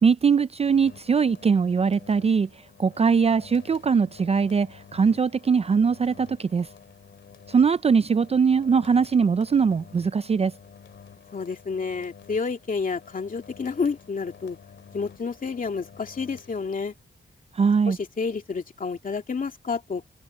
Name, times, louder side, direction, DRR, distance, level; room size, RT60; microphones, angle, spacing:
voice 1, 0.0-2.5 2.8-6.7 7.5-10.5 17.6-18.0, right 5 dB, 35° right, 0.4 m, -21 dB
sound 1, 0.6-17.1, left 7 dB, 80° left, 2.6 m, -50 dB
voice 2, 11.3-14.6 14.9-16.9 17.9-20.0, left 5 dB, 45° left, 2.5 m, -30 dB
wide cardioid pair, 135°, 19 cm